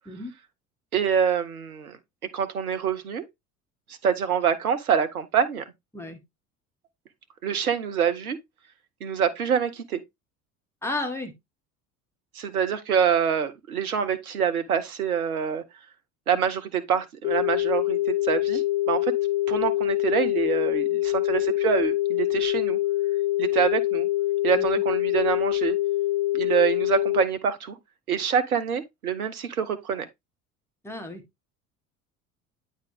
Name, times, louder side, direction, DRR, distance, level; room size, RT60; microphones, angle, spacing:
voice 1, 0.9-2.0 2.3-3.2 3.9-5.6 7.4-8.4 9.0-10.0 12.3-15.6 16.3-19.1 19.5-22.8 23.4-24.1 24.4-25.8 26.3-27.8 28.1-30.1, right 7 dB, 80° right, 1.0 m, -26 dB
voice 2, 10.8-11.3 24.5-24.7 30.8-31.2, left 2 dB, 5° left, 2.1 m, -32 dB
sound 1, 17.2-27.2, left 15 dB, 70° left, 0.8 m, -25 dB
8.9 x 4.1 x 3.5 m
figure-of-eight pair, 60°, 43 cm